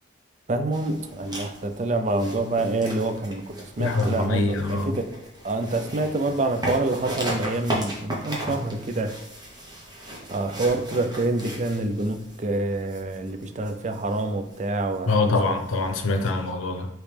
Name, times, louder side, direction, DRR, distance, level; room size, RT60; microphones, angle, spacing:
voice 1, 0.5-5.1 5.4-9.2 10.3-15.5, right 2 dB, 35° right, 7 dB, 0.4 m, -27 dB
sound 1, 0.7-16.3, right 1 dB, 20° right, 0.9 m, -37 dB
voice 2, 3.8-5.0 15.1-16.9, left 3 dB, 90° left, 4 dB, 0.6 m, -24 dB
5.0 x 3.1 x 3.3 m, 0.91 s
head